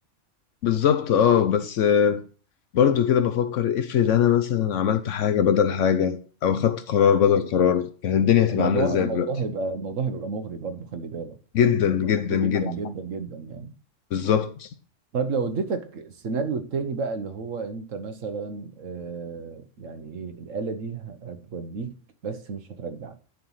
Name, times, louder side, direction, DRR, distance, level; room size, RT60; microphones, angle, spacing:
voice 1, 0.6-2.2 2.7-9.3 11.5-12.7 14.1-14.7, left 8 dB, 75° left, 1.1 m, -21 dB
voice 2, 8.5-13.7 15.1-22.0 22.2-23.2, right 4 dB, 85° right, 1.5 m, -31 dB
10.5 x 4.6 x 5.6 m
omnidirectional pair, 1.3 m